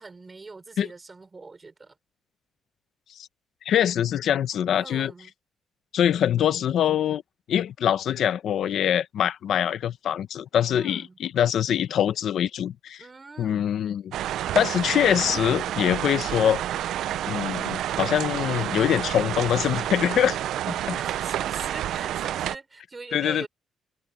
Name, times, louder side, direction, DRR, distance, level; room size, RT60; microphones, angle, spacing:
voice 1, 0.0-1.9 4.7-5.3 10.7-11.2 13.0-13.7 20.9-23.5, right 3 dB, 20° right, 4.9 m, -42 dB
voice 2, 3.6-5.1 5.9-7.2 7.5-13.0 13.4-14.0 14.5-16.6 17.3-20.4 20.9-21.0 23.1-23.5, left 10 dB, 60° left, 0.8 m, -24 dB
sound 1, 14.1-22.6, right 12 dB, 75° right, 0.5 m, -29 dB
cardioid pair, 155°, 0 cm